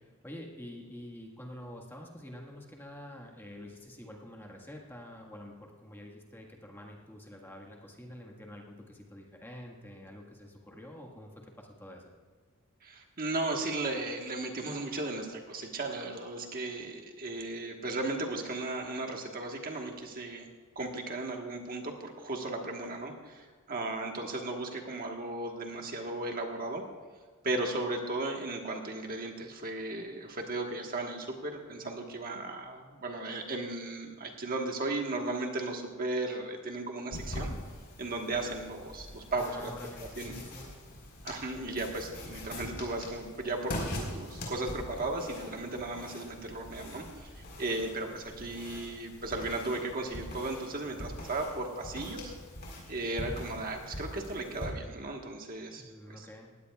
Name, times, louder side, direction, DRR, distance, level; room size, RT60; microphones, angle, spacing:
voice 1, 0.2-12.1 39.3-40.7 55.7-56.6, left 1 dB, 10° left, 0 dB, 1.5 m, -47 dB
voice 2, 12.8-20.5 20.7-26.8 27.4-37.5 38.0-39.7 40.2-40.3 41.2-52.3 52.9-56.3, right 2 dB, 40° right, 2 dB, 1.4 m, -36 dB
sound 1, 37.1-54.7, left 1 dB, 50° left, 4.1 m, -43 dB
19.5 x 16.5 x 2.4 m, 1.5 s
head